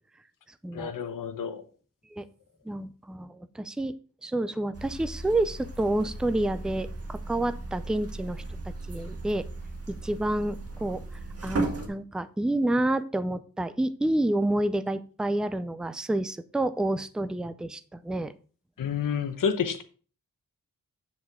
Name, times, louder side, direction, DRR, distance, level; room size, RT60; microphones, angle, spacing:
voice 1, 0.7-1.6 18.8-19.8, left 7 dB, 70° left, 1.0 m, -29 dB
voice 2, 2.7-3.9 4.2-8.4 8.9-9.4 9.9-11.0 11.4-18.3, right 1 dB, ahead, 0.3 m, -29 dB
sound 1, 4.7-11.9, right 2 dB, 45° right, 1.6 m, -36 dB
8.2 x 7.2 x 3.6 m
wide cardioid pair, 175°, 34 cm